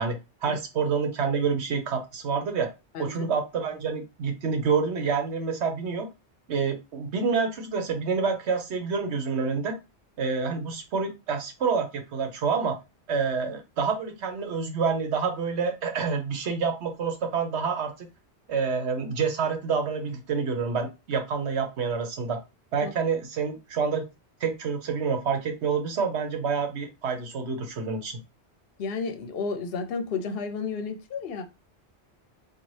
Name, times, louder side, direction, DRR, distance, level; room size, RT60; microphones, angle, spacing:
voice 1, 0.0-2.7 3.0-6.1 6.5-9.8 10.2-12.8 13.1-18.1 18.5-22.4 22.7-24.1 24.4-28.2, right 5 dB, 80° right, 1.1 m, -28 dB
voice 2, 2.9-3.3 22.8-22.9 28.8-31.4, left 4 dB, 65° left, 0.8 m, -32 dB
4.0 x 2.5 x 3.2 m
omnidirectional pair, 1.1 m